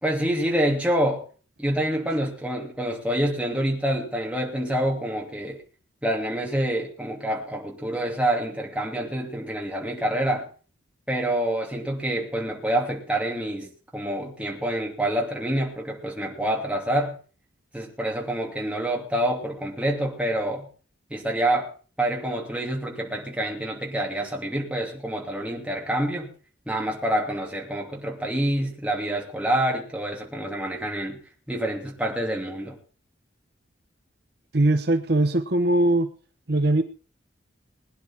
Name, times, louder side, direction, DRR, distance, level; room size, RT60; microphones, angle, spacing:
voice 1, 0.0-1.2 1.6-5.6 6.0-10.4 11.1-17.2 17.7-20.7 21.1-21.7 22.0-26.3 26.7-31.2 31.5-32.8, right 1 dB, 5° right, -1 dB, 2.7 m, -27 dB
voice 2, 34.5-36.1 36.5-36.8, right 1 dB, 55° right, 7 dB, 0.9 m, -20 dB
21.0 x 10.0 x 4.4 m, 0.40 s
head